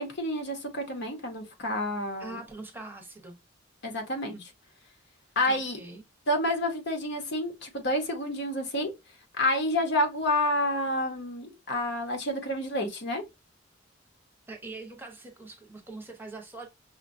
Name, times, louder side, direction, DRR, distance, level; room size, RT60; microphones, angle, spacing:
voice 1, 0.0-2.4 3.8-4.3 5.4-5.8 6.3-8.9 9.4-13.2, left 1 dB, 60° left, 0.9 m, -29 dB
voice 2, 2.2-3.4 4.3-4.4 5.5-6.0 14.5-16.7, right 2 dB, 10° right, 0.8 m, -43 dB
5.7 x 2.2 x 2.6 m
head